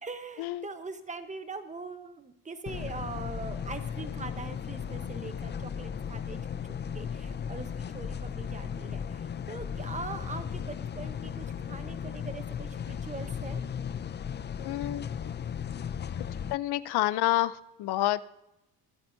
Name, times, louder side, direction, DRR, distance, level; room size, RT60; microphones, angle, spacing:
voice 1, 0.0-6.4 6.9-13.6, right 3 dB, 20° right, 9 dB, 1.0 m, -42 dB
sound 1, 2.7-16.5, left 7 dB, 30° left, 0.4 m, -36 dB
voice 2, 14.6-15.0 16.2-16.3 16.5-18.3, left 15 dB, 75° left, 16 dB, 0.7 m, -28 dB
23.5 x 9.0 x 2.7 m, 0.89 s
cardioid pair, 125°, 40 cm